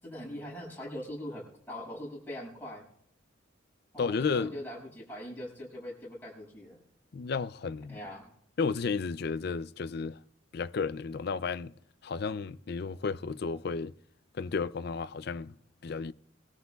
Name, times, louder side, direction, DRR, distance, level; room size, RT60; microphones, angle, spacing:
voice 1, 0.0-2.8 3.9-6.8 7.9-8.3, left 1 dB, 10° left, 6.8 m, -41 dB
voice 2, 4.0-4.5 7.1-8.0 8.6-10.2 10.5-11.7 12.0-13.9 14.3-15.5 15.8-16.1, left 5 dB, 55° left, 0.4 m, -32 dB
22.5 x 13.5 x 2.4 m
head